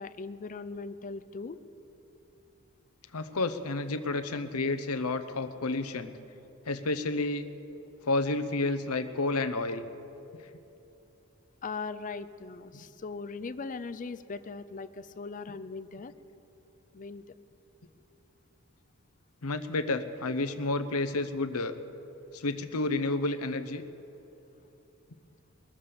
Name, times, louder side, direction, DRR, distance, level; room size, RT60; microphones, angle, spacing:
voice 1, 0.0-1.6 11.6-16.1 16.9-17.2, left 4 dB, 35° left, 13 dB, 0.5 m, -39 dB
voice 2, 3.1-6.1 6.6-7.5 8.0-9.9 12.7-12.8 19.4-21.7 22.3-23.8, left 2 dB, 80° left, 11 dB, 0.8 m, -30 dB
22.0 x 7.4 x 6.8 m, 2.9 s
head